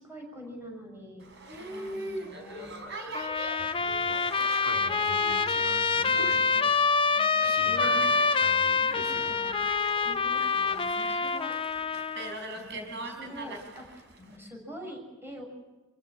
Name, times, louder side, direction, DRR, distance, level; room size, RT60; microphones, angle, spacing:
voice 1, 0.0-2.7 7.0-8.1 8.8-9.6 10.0-11.6 12.5-15.4, equal, 10° right, 1 dB, 6.7 m, -45 dB
Boat Water vehicle, 1.2-14.4, right 1 dB, 60° right, 4.7 m, -42 dB
Trumpet, 3.1-12.3, left 5 dB, 25° left, 0.8 m, -26 dB
voice 2, 3.6-6.4 7.4-9.3, right 1 dB, 75° right, 1 dB, 4.4 m, -43 dB
27.0 x 16.0 x 8.9 m, 1.1 s
head